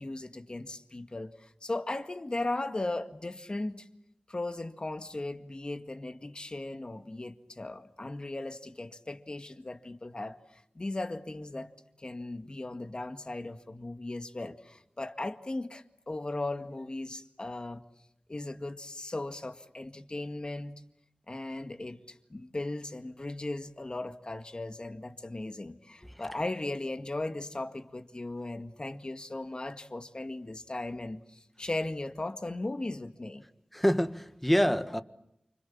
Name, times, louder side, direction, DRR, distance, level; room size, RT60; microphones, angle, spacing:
voice 1, 0.0-3.9 4.3-11.7 12.0-17.8 18.3-20.8 21.3-33.4, left 2 dB, 40° left, 2.0 m, -37 dB
voice 2, 33.7-35.0, equal, 5° left, 1.5 m, -26 dB
29.0 x 26.5 x 7.3 m
wide cardioid pair, 85°, 3 cm